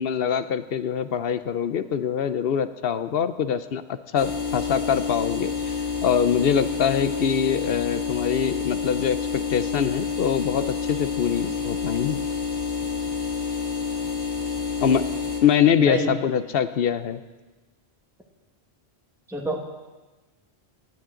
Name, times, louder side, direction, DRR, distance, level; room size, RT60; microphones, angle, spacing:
voice 1, 0.0-5.7 6.0-12.2 14.8-15.1 15.4-17.2, left 8 dB, 65° left, 12 dB, 0.8 m, -24 dB
sound 1, 4.2-15.4, left 5 dB, 90° left, 2.0 m, -28 dB
voice 2, 15.8-16.1 19.3-19.6, right 1 dB, ahead, 0 dB, 1.3 m, -27 dB
18.5 x 11.5 x 3.8 m, 1.2 s
omnidirectional pair, 1.1 m